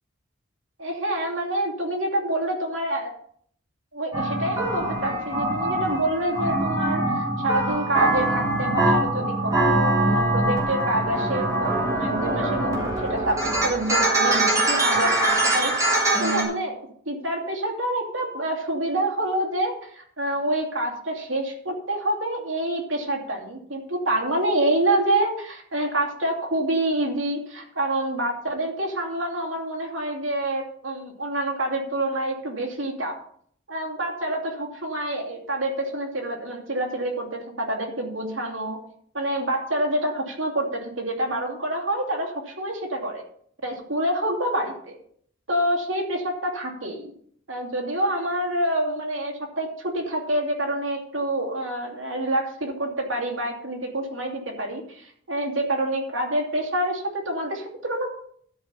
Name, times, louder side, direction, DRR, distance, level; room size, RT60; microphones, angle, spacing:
voice 1, 0.8-3.1 3.9-15.7 16.2-16.8 17.1-33.2 33.7-38.8 39.1-43.2 43.6-44.9 45.5-47.1 47.5-58.1, right 1 dB, 75° right, 1 dB, 2.6 m, -27 dB
sound 1, 4.1-16.4, right 1 dB, 15° right, 3.3 m, -23 dB
12.5 x 5.5 x 5.6 m, 0.63 s
head